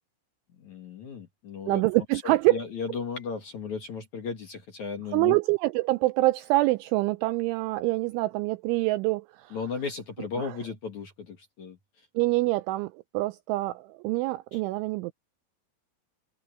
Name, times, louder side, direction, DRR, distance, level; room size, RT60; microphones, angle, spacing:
voice 1, 0.6-1.8 2.2-5.4 9.5-11.8 14.5-14.6, left 5 dB, 50° left, 2.4 m, -35 dB
voice 2, 1.7-2.6 5.1-9.6 10.4-10.6 12.2-15.1, right 20 dB, 90° right, 2.7 m, -25 dB
omnidirectional pair, 6.0 m